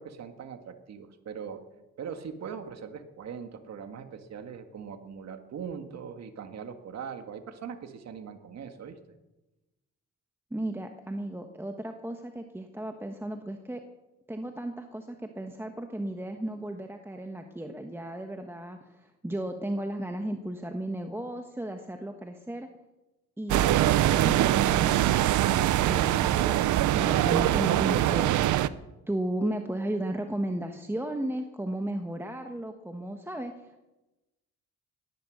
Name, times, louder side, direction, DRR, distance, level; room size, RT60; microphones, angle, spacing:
voice 1, 0.0-1.6 2.0-9.0, right 7 dB, 60° right, 7 dB, 1.9 m, -41 dB
voice 2, 10.5-13.8 14.3-22.7 23.4-25.1 25.9-26.5 26.8-28.4 29.1-33.8, right 1 dB, 10° right, 5 dB, 1.3 m, -34 dB
sound 1, 23.5-28.7, right 13 dB, 75° right, 0.7 m, -23 dB
17.5 x 11.5 x 6.4 m, 1.0 s
cardioid pair, 90°, 30 cm